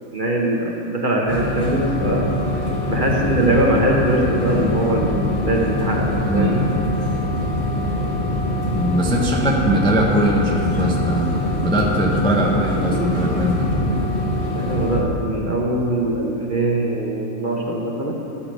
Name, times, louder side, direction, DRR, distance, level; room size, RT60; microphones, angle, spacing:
voice 1, 0.1-2.3 2.8-6.7 8.2-8.3 14.4-18.1, right 1 dB, 40° right, -2 dB, 0.9 m, -22 dB
sound 1, 1.3-15.0, left 1 dB, 25° left, 1.5 m, -23 dB
voice 2, 6.2-6.6 8.7-13.6, equal, 5° left, -2 dB, 0.7 m, -21 dB
13.0 x 4.9 x 6.6 m, 3.0 s
omnidirectional pair, 1.5 m